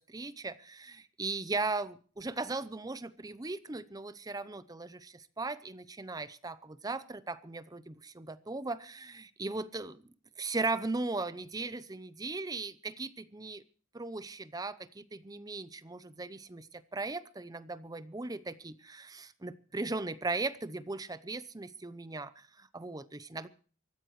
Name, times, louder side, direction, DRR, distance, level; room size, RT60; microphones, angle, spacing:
voice 1, 0.1-10.0 10.4-13.6 13.9-23.5, right 3 dB, 20° right, 15 dB, 0.7 m, -38 dB
24.5 x 14.0 x 3.2 m, 0.41 s
head